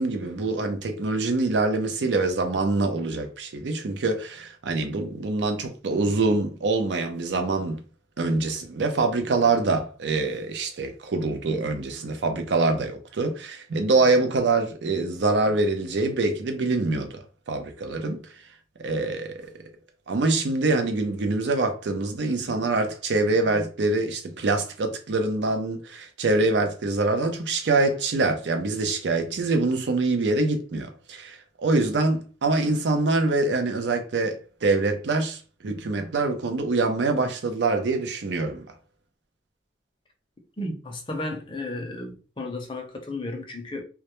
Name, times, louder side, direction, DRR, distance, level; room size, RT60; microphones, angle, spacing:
voice 1, 0.0-7.8 8.2-18.2 18.8-19.4 20.1-38.7, right 3 dB, 85° right, 0.5 m, -25 dB
voice 2, 40.6-43.8, left 2 dB, 30° left, 0.5 m, -33 dB
2.2 x 2.1 x 2.9 m
head